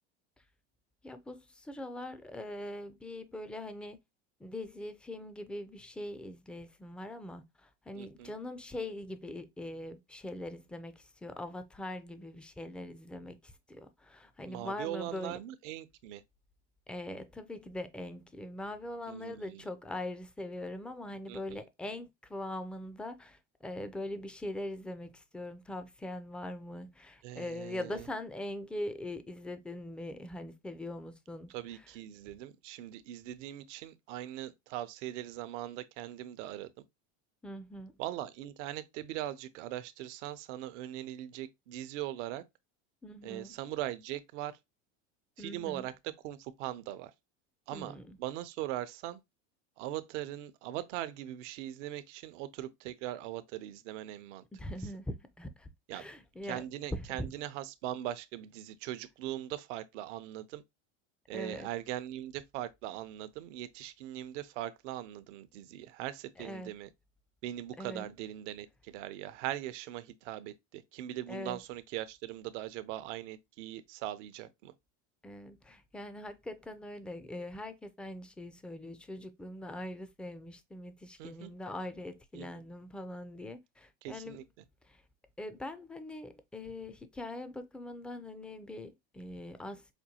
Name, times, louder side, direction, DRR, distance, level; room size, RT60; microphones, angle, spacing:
voice 1, 1.0-4.0 4.4-15.4 16.9-31.8 37.4-37.9 43.0-43.6 45.4-45.9 47.7-48.2 54.5-56.6 56.9-57.3 61.3-61.7 66.4-66.7 67.8-68.1 71.3-71.6 75.2-84.4 84.8-85.0 85.4-89.9, left 1 dB, 5° left, 0.3 m, -42 dB
voice 2, 8.0-8.3 14.5-16.2 19.1-19.6 21.3-21.6 27.2-28.0 31.5-36.9 38.0-42.4 43.2-44.6 45.4-45.9 46.2-47.1 47.7-49.2 49.8-54.4 55.9-56.1 56.4-60.6 61.3-66.9 67.4-74.7 81.2-81.5 82.3-82.5 84.0-84.4, right 13 dB, 75° right, 0.6 m, -40 dB
5.2 x 2.2 x 2.8 m
supercardioid pair, 105°, 36 cm